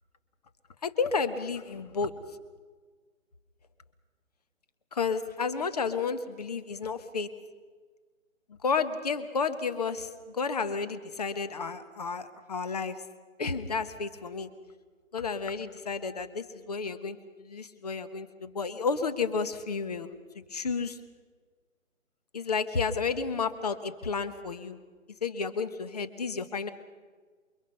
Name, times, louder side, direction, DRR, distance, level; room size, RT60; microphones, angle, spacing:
voice 1, 0.8-2.1 4.9-7.3 8.6-13.0 13.4-14.5 15.1-20.1 20.5-21.0 22.3-24.8 25.2-26.7, left 5 dB, 30° left, 12 dB, 1.2 m, -31 dB
28.5 x 23.5 x 5.4 m, 1.5 s
hypercardioid pair, 170°, 40 cm